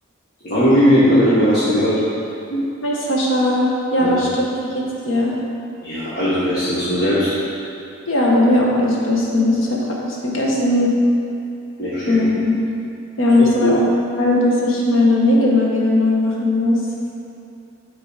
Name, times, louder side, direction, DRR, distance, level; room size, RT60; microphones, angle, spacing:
voice 1, 0.4-2.0 4.0-4.2 5.8-7.3 11.8-12.2 13.6-13.7, equal, 50° left, -12 dB, 1.5 m, -17 dB
voice 2, 2.5-4.5 4.7-5.3 8.1-10.9 12.1-12.6 13.2-13.8 14.2-16.8, left 1 dB, 80° left, -3 dB, 1.3 m, -18 dB
8.1 x 4.0 x 5.0 m, 2.7 s
head